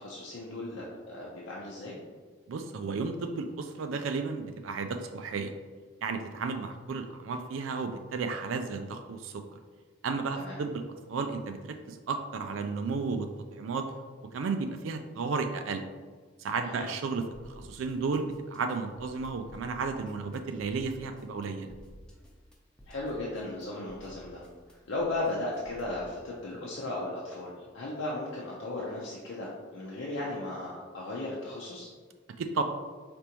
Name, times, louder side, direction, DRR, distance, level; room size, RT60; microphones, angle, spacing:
voice 1, 0.0-2.0 10.4-10.6 16.6-16.9 22.9-24.4 24.7-31.9, left 2 dB, 80° left, -5 dB, 0.7 m, -36 dB
voice 2, 2.5-5.5 6.0-9.4 10.0-10.8 11.1-13.9 14.3-15.9 16.4-21.7 32.4-32.6, right 4 dB, 90° right, 6 dB, 0.4 m, -33 dB
sound 1, 17.3-26.1, equal, 5° left, 0.7 m, -53 dB
5.0 x 3.4 x 2.9 m, 1.5 s
head